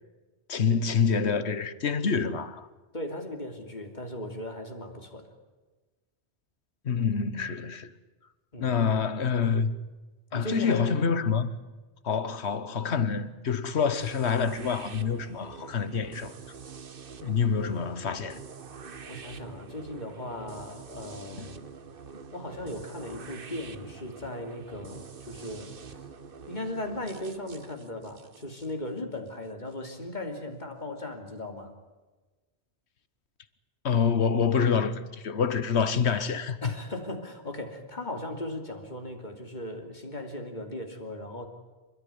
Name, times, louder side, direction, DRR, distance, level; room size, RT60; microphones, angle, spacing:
voice 1, 0.5-2.7 6.8-7.9 8.6-9.8 10.3-11.5 12.0-16.3 17.2-18.4 21.4-21.5 33.8-36.7, left 6 dB, 75° left, 1.5 m, -27 dB
voice 2, 2.9-5.3 8.5-8.7 10.3-11.2 19.1-21.6 22.3-25.8 26.5-31.7 36.6-41.5, left 1 dB, 40° left, 3.0 m, -37 dB
sound 1, 13.9-29.7, right 6 dB, 55° right, 1.3 m, -46 dB
29.0 x 13.5 x 9.6 m
omnidirectional pair, 1.1 m